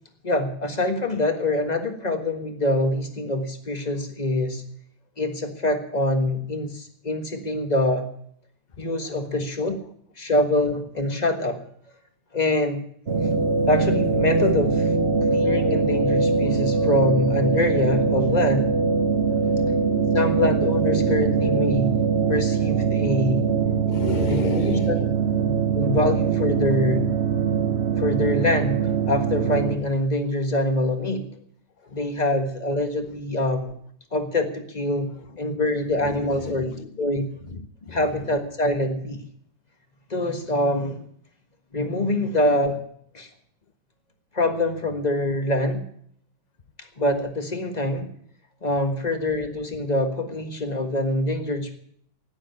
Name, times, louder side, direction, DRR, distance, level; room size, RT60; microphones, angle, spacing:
voice 1, 0.2-4.6 5.2-8.1 8.8-9.8 10.2-11.6 12.3-12.8 13.7-14.9 15.2-18.7 20.1-22.0 22.3-23.5 24.3-25.0 25.4-27.1 28.0-31.3 31.9-33.7 34.1-35.1 35.4-36.7 37.0-37.3 37.9-39.2 40.1-41.0 41.7-42.8 43.1-43.3 44.3-45.8 47.0-48.1 48.6-51.8, left 1 dB, 25° left, 6 dB, 1.5 m, -24 dB
voice 2, 8.8-9.2 19.3-19.8 23.8-25.2 31.8-32.2 35.1-35.5 35.9-37.1 37.4-38.3, left 4 dB, 80° left, 10 dB, 0.4 m, -35 dB
sound 1, 13.1-29.8, right 5 dB, 40° right, 1.2 m, -22 dB
12.5 x 9.8 x 9.5 m, 0.65 s
omnidirectional pair, 2.1 m